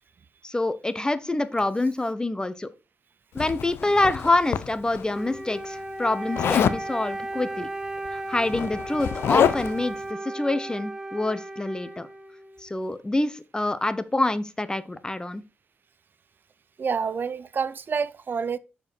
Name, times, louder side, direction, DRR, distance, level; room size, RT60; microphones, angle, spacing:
voice 1, 0.4-2.7 3.3-7.7 8.1-12.1 12.6-15.4, left 2 dB, 20° left, 0.8 m, -26 dB
Zipper (clothing), 3.4-5.0 6.3-6.8 8.0-8.1 8.4-9.8, left 9 dB, 85° left, 0.5 m, -26 dB
Wind instrument woodwind instrument, 5.1-12.7, right 1 dB, 15° right, 0.9 m, -35 dB
voice 2, 16.8-18.6, right 6 dB, 55° right, 0.5 m, -28 dB
7.1 x 4.6 x 4.4 m
cardioid pair, 60°, 4 cm